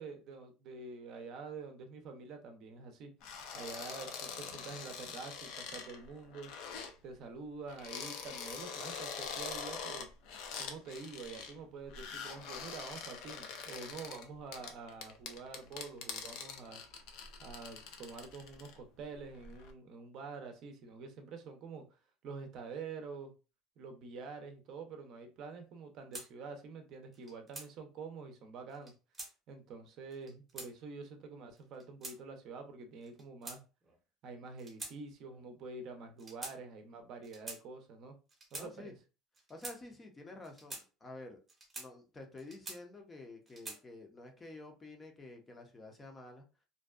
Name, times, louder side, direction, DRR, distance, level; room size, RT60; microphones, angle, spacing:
voice 1, 0.0-3.1 3.5-6.5 7.0-10.1 10.6-16.8 17.4-21.8 22.2-23.3 23.8-28.9 29.5-33.6 34.2-38.2 38.5-38.9, right 4 dB, 55° right, 0.6 m, -47 dB
sound 1, 3.2-6.9 7.7-11.6 11.9-18.8 19.2-19.7, left 6 dB, 70° left, 0.5 m, -44 dB
sound 2, 26.1-26.3 27.1-27.7 28.7-29.3 30.1-30.7 31.6-32.2 33.0-33.9 34.6-34.9 35.2-35.4 36.2-36.6 37.2-37.6 38.3-38.7 39.3-39.8 40.4-40.8 41.5-41.9 42.4-43.0 43.5-43.8, right 2 dB, 15° right, 0.8 m, -46 dB
voice 2, 38.5-39.0 39.5-41.4 41.8-46.4, left 2 dB, 20° left, 0.6 m, -50 dB
2.5 x 2.2 x 2.3 m
cardioid pair, 130°, 0 cm